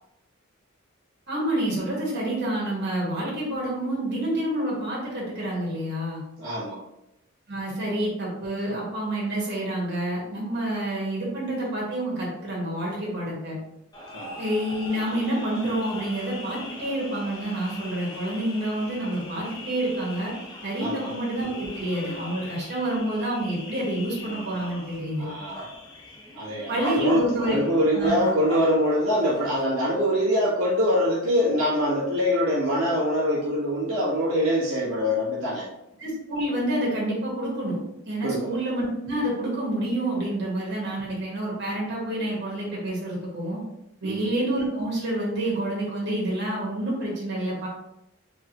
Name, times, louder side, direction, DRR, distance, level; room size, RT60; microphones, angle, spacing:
voice 1, 1.3-6.2 7.5-13.6 14.4-20.3 20.6-25.3 26.7-27.6 27.9-28.2 36.0-37.8 38.0-43.6 44.0-47.7, right 1 dB, 55° right, -5 dB, 1.5 m, -28 dB
voice 2, 6.4-6.8 14.1-14.4 20.8-21.1 25.2-25.7 26.3-35.7 38.2-38.5 44.0-44.3, equal, 90° right, -6 dB, 1.1 m, -24 dB
sound 1, 13.9-29.6, equal, 20° left, 0.8 m, -40 dB
3.5 x 3.3 x 2.9 m, 0.84 s
head